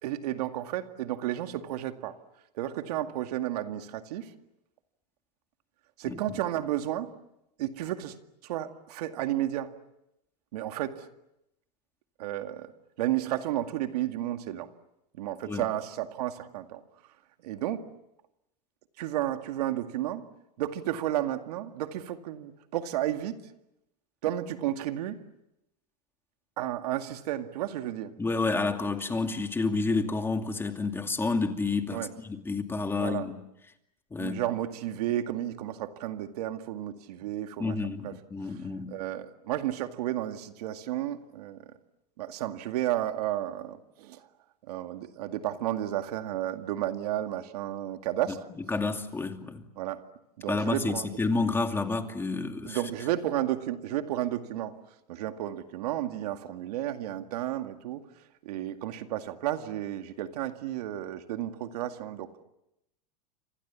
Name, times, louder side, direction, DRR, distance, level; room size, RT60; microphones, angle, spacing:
voice 1, 0.0-2.1 2.5-4.3 6.0-7.1 7.6-8.1 8.4-9.7 10.5-11.1 12.2-12.7 13.0-14.7 15.1-16.8 17.4-17.9 19.0-20.2 20.6-23.4 24.2-25.2 26.6-28.1 31.9-32.1 32.9-33.3 34.2-37.8 38.0-38.1 38.5-38.6 38.9-41.6 42.2-44.3 44.7-48.4 49.8-50.0 50.4-51.1 52.6-54.7 55.1-58.0 58.4-62.3, right 13 dB, 70° right, 7 dB, 2.1 m, -32 dB
voice 2, 28.2-33.3 34.1-34.4 37.6-38.9 48.7-49.6 50.5-52.8, left 3 dB, 10° left, 5 dB, 2.5 m, -29 dB
29.5 x 26.5 x 7.3 m, 0.86 s
hypercardioid pair, 120°, 21 cm